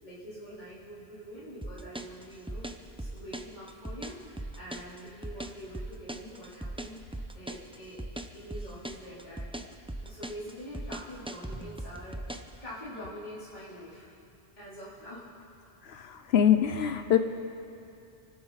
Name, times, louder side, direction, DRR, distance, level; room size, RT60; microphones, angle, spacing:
voice 1, 0.0-8.0 8.3-14.1 14.6-15.4, equal, 45° left, -11 dB, 3.9 m, -45 dB
sound 1, 1.6-12.5, right 1 dB, 5° right, 0.5 m, -39 dB
voice 2, 15.8-17.2, left 9 dB, 80° left, 8 dB, 1.0 m, -24 dB
28.5 x 12.0 x 4.0 m, 2.6 s
omnidirectional pair, 1.1 m